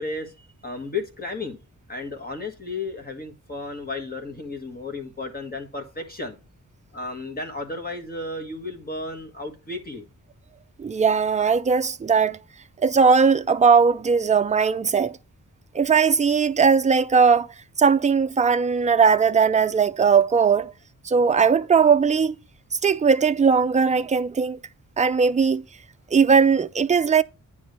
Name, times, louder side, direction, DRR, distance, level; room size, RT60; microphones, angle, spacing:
voice 1, 0.0-1.6 1.9-6.4 6.9-10.0, left 3 dB, 30° left, 1.6 m, -33 dB
voice 2, 10.8-12.4 12.8-15.2 15.7-17.5 17.8-20.7 21.1-22.3 22.8-24.6 25.0-25.6 26.1-27.2, right 5 dB, 25° right, 0.3 m, -19 dB
9.3 x 3.2 x 6.6 m
wide cardioid pair, 170°, 33 cm